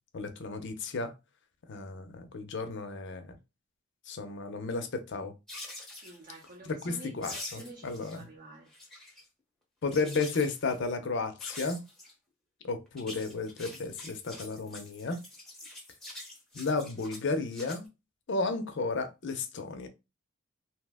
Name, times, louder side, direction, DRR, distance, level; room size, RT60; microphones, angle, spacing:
voice 1, 0.1-1.1 1.7-3.4 4.1-5.3 6.7-8.3 9.8-11.8 12.6-15.2 16.5-17.9 18.3-19.9, left 3 dB, 55° left, 0.5 m, -33 dB
sound 1, 5.5-6.5 7.2-8.2 8.5-9.2 9.9-10.8 11.4-12.1 12.9-17.8, left 2 dB, ahead, 0.7 m, -45 dB
voice 2, 6.0-8.7, right 2 dB, 40° right, 0.6 m, -49 dB
2.9 x 2.0 x 3.4 m
head